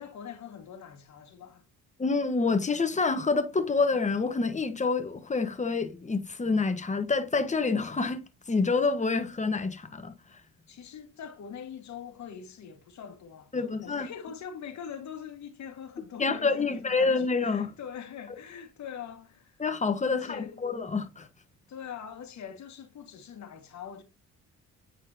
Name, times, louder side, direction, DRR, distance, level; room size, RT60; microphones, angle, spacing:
voice 1, 0.0-1.7 10.7-19.6 20.1-20.7 21.7-24.0, left 8 dB, 65° left, 1.7 m, -43 dB
voice 2, 2.0-8.2 8.5-10.1 13.5-14.1 16.2-17.7 19.6-21.3, left 4 dB, 25° left, 1.3 m, -27 dB
9.0 x 4.2 x 2.8 m
cardioid pair, 80°, 30 cm